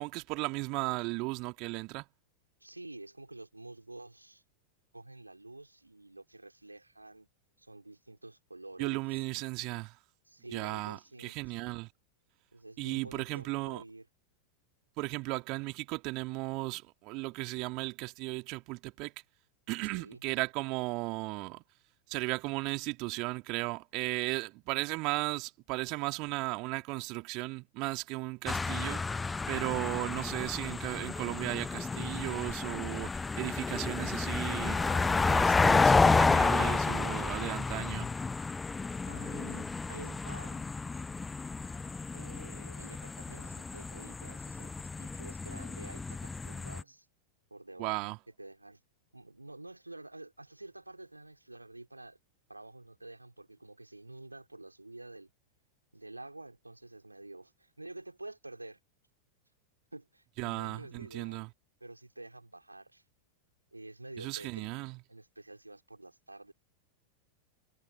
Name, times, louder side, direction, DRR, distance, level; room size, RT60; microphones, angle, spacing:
voice 1, 0.0-2.0 8.8-10.0 10.5-11.9 12.8-13.8 15.0-19.1 19.7-21.6 22.1-29.0 29.5-34.8 35.3-38.1 47.8-48.2 60.4-61.5 64.2-65.0, right 25 dB, 40° right, 2.7 m, -36 dB
voice 2, 2.6-4.4 4.9-7.3 7.6-9.0 10.3-11.4 12.5-14.0 19.9-20.2 34.7-35.5 39.0-40.7 42.1-47.1 47.5-48.1 48.4-48.8 49.1-52.2 52.5-55.3 55.9-58.8 59.9-61.5 61.8-63.0 63.7-64.7 65.1-66.5, right 2 dB, 85° right, 4.3 m, -49 dB
sound 1, 28.5-46.8, left 4 dB, 10° left, 0.4 m, -31 dB
figure-of-eight pair, 90°, 0 cm